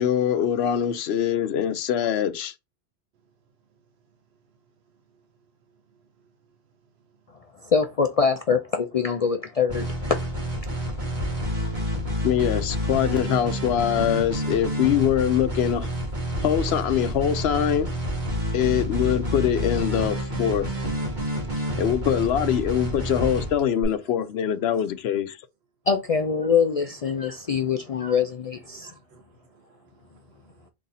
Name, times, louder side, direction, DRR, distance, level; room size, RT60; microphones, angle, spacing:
voice 1, 0.0-2.5 12.2-15.9 16.4-17.9 18.5-20.7 21.8-25.4, left 9 dB, 80° left, 0.9 m, -23 dB
voice 2, 7.6-10.5 11.0-11.4 25.9-29.0, left 6 dB, 50° left, 0.5 m, -24 dB
sound 1, 9.7-23.8, equal, 45° right, 1.5 m, -29 dB
voice 3, 29.1-30.7, right 5 dB, 80° right, 0.9 m, -59 dB
4.0 x 3.1 x 4.1 m
omnidirectional pair, 1.1 m